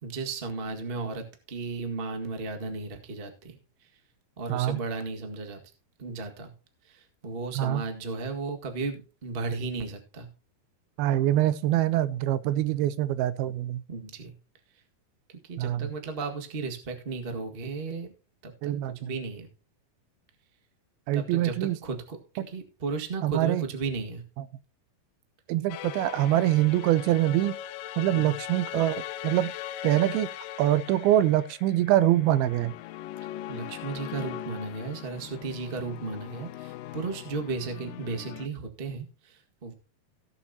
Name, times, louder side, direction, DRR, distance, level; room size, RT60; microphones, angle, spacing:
voice 1, 0.0-3.9 4.4-5.6 6.0-6.5 6.8-10.3 13.9-14.3 15.3-18.1 18.4-19.5 21.1-24.2 28.1-28.4 33.5-39.7, right 4 dB, 65° right, 4 dB, 0.5 m, -35 dB
voice 2, 4.5-4.8 7.6-7.8 11.0-13.8 15.6-15.9 18.6-19.1 21.1-21.8 22.4-22.5 23.2-23.6 25.5-27.6 28.0-29.5 29.8-30.3 30.6-32.7, right 13 dB, 80° right, 16 dB, 2.5 m, -24 dB
sound 1, 25.7-38.5, left 13 dB, 80° left, 2.1 m, -40 dB
17.5 x 7.5 x 2.8 m, 0.35 s
omnidirectional pair, 4.4 m